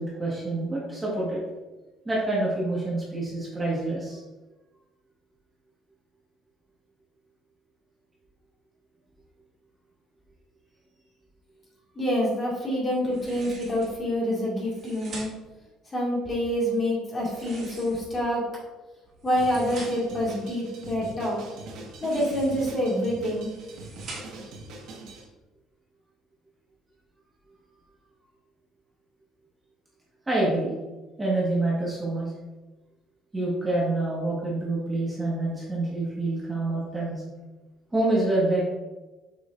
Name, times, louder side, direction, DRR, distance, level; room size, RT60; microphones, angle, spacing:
voice 1, 0.0-1.4 2.0-4.2 30.2-30.7 31.2-32.3 33.3-37.2 37.9-38.6, right 2 dB, 10° right, -6 dB, 1.5 m, -27 dB
voice 2, 12.0-15.3 15.9-18.4 19.2-21.4 22.0-23.5, equal, 20° left, -5 dB, 2.0 m, -27 dB
sound 1, 13.1-14.0 14.6-15.6 17.2-18.2 19.0-20.2 21.8-22.7 23.3-24.5, right 3 dB, 40° right, 2.2 m, -45 dB
Drum kit, 19.4-25.2, right 2 dB, 65° right, 1.6 m, -43 dB
6.7 x 6.5 x 2.5 m, 1.2 s
cardioid pair, 160°, 0 cm